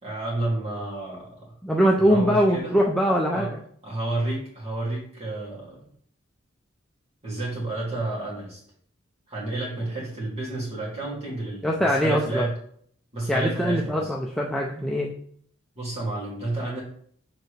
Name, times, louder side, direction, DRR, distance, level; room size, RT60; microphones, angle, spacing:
voice 1, 0.0-1.5 2.0-2.7 3.3-3.5 3.8-5.9 7.2-8.6 9.3-12.5 13.1-14.1 15.7-16.8, right 2 dB, 30° right, -5 dB, 2.5 m, -30 dB
voice 2, 1.6-3.5 11.6-12.5 13.3-15.1, equal, ahead, -2 dB, 0.4 m, -22 dB
7.0 x 4.4 x 3.3 m, 0.62 s
head